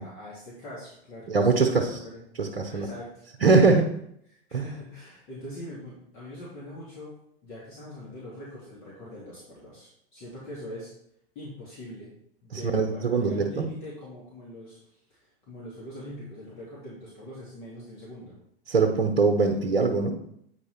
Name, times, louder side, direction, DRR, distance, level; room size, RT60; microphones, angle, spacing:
voice 1, 0.0-2.2 2.6-3.8 4.5-7.1 7.4-10.9 11.3-12.1 12.4-14.8 15.1-18.4 18.9-19.0 19.3-19.5, left 1 dB, 40° left, -7 dB, 2.9 m, -43 dB
voice 2, 1.3-1.9 2.4-2.9 3.4-3.9 4.5-4.6 12.5-13.6 18.7-20.2, right 4 dB, 85° right, 3 dB, 1.0 m, -22 dB
8.9 x 4.7 x 4.3 m, 0.73 s
hypercardioid pair, 100°, 30 cm